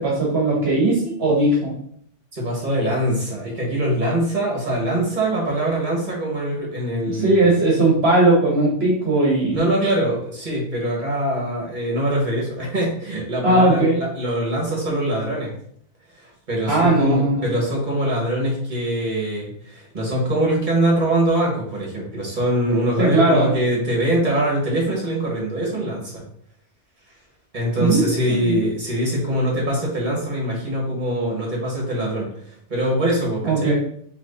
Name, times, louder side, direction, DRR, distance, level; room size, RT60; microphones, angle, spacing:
voice 1, 0.0-1.7 7.1-9.6 13.4-14.0 16.7-17.5 23.0-23.5 27.8-28.6 33.4-33.7, right 2 dB, 65° right, -3 dB, 1.3 m, -18 dB
voice 2, 2.3-7.4 9.5-15.5 16.2-26.2 27.5-33.7, right 1 dB, 45° right, -4 dB, 1.7 m, -23 dB
5.8 x 3.1 x 2.8 m, 0.65 s
omnidirectional pair, 1.2 m